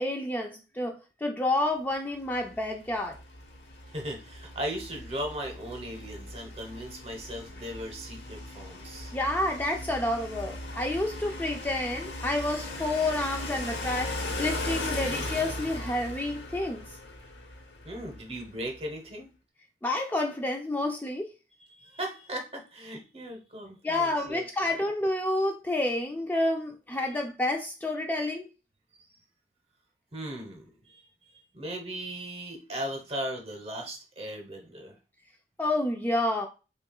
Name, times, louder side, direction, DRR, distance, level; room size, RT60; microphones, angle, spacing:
voice 1, 0.0-3.2 9.1-16.8 19.8-21.3 23.8-28.5 35.6-36.5, left 1 dB, 10° left, 0.3 m, -29 dB
sound 1, 2.3-18.5, left 2 dB, 85° left, 0.9 m, -38 dB
voice 2, 3.9-9.1 17.8-19.3 21.7-24.7 30.1-35.0, right 1 dB, 35° right, 0.9 m, -38 dB
5.6 x 2.3 x 2.3 m
head